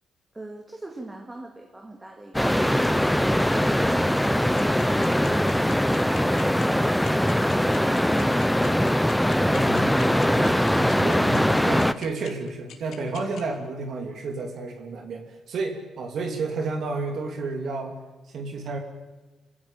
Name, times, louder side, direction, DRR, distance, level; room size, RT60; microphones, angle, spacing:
voice 1, 0.3-3.1 3.9-8.2, right 2 dB, 15° right, 3 dB, 2.3 m, -41 dB
sound 1, 2.3-11.9, equal, 5° left, 0.9 m, -21 dB
sound 2, 4.6-13.4, left 10 dB, 75° left, 2.8 m, -43 dB
voice 2, 9.5-18.0 18.3-18.8, right 3 dB, 65° right, 3 dB, 3.1 m, -31 dB
26.5 x 16.0 x 8.9 m, 1.2 s
cardioid pair, 90°, 0 cm